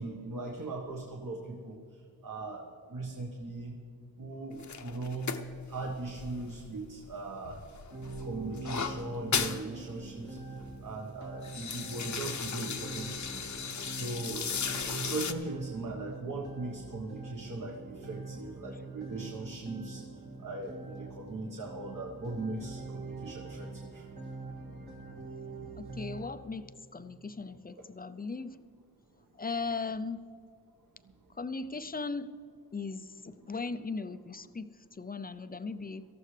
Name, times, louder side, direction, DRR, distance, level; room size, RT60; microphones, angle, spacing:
voice 1, 0.0-1.7 2.2-2.6 2.9-3.7 4.2-5.4 5.7-7.6 8.2-10.4 10.8-13.4 13.9-20.0 20.4-24.0, right 3 dB, 55° right, 0 dB, 1.4 m, -39 dB
sound 1, 4.6-7.1 7.4-9.6 10.0-10.1 10.4-10.8 11.2-15.3, left 6 dB, 50° left, 0.8 m, -36 dB
sound 2, 7.9-26.3, right 3 dB, 75° right, 2.2 m, -44 dB
voice 2, 25.8-28.6 29.4-30.2 31.4-32.3 32.7-34.7 35.0-36.0, left 4 dB, 25° left, 12 dB, 0.5 m, -38 dB
18.5 x 14.0 x 3.3 m, 2.5 s
wide cardioid pair, 90°, 38 cm